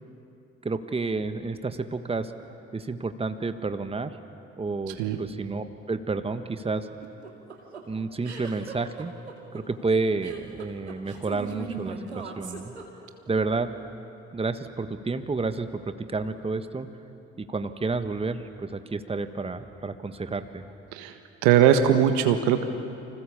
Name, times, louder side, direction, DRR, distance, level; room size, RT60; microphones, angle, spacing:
voice 1, 0.6-2.3 2.7-4.1 4.6-6.9 7.9-9.1 9.5-12.7 13.3-13.7 14.3-16.9 17.4-20.6, right 3 dB, 20° right, 9 dB, 1.5 m, -30 dB
sound 1, 7.0-13.3, right 5 dB, 85° right, 2.2 m, -39 dB
voice 2, 20.9-22.6, right 9 dB, 65° right, 8 dB, 1.6 m, -20 dB
29.0 x 26.0 x 7.2 m, 2.7 s
figure-of-eight pair, 50°, 32 cm